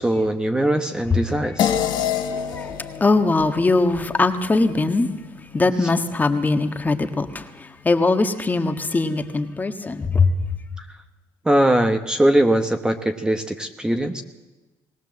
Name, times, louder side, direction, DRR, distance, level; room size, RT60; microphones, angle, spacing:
voice 1, 0.0-1.7 10.8-10.9 11.4-14.2, right 1 dB, 10° right, 6 dB, 1.2 m, -21 dB
sound 1, 1.6-6.3, left 9 dB, 60° left, 1.5 m, -28 dB
voice 2, 2.4-5.1 5.5-10.3, left 3 dB, 20° left, 7 dB, 1.5 m, -21 dB
20.5 x 18.0 x 7.6 m, 1.1 s
cardioid pair, 105°, 9 cm